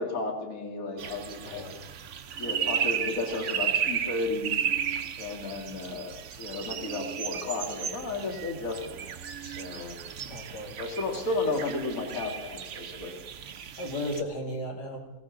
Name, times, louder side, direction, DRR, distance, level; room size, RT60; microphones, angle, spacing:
voice 1, 0.0-1.6 2.4-4.5 5.2-9.1 9.4-10.0 10.7-13.1, left 3 dB, 55° left, 2 dB, 2.3 m, -33 dB
sound 1, 1.0-14.2, right 8 dB, 60° right, 0.9 m, -34 dB
voice 2, 1.4-1.9 10.3-10.8 13.8-15.0, left 1 dB, 85° left, 1 dB, 2.6 m, -35 dB
19.5 x 17.0 x 3.8 m, 1.1 s
omnidirectional pair, 1.7 m